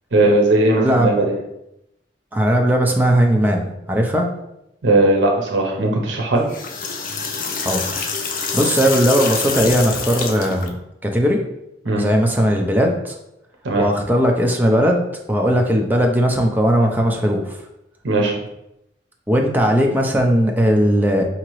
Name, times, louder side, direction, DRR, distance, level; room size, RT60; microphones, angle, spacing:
voice 1, 0.1-1.3 4.8-6.5 11.9-12.0 13.6-13.8 18.0-18.3, right 2 dB, 80° right, 0 dB, 0.7 m, -17 dB
voice 2, 0.8-1.1 2.3-4.3 7.6-10.8 11.0-11.4 12.0-13.2 13.8-17.6 19.3-21.2, equal, 10° right, 1 dB, 0.4 m, -18 dB
sound 1, 6.4-10.7, left 5 dB, 50° left, 0.4 m, -26 dB
4.9 x 2.8 x 3.0 m, 0.85 s
head